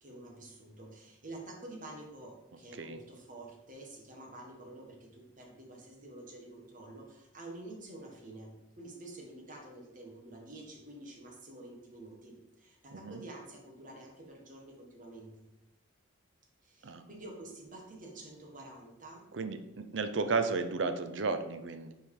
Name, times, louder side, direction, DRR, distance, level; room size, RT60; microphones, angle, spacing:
voice 1, 0.0-15.4 16.6-19.3, right 2 dB, 45° right, 0 dB, 1.5 m, -49 dB
voice 2, 12.9-13.2 16.8-17.0 19.3-21.9, right 4 dB, 70° right, 9 dB, 0.6 m, -33 dB
5.5 x 4.6 x 4.8 m, 0.99 s
head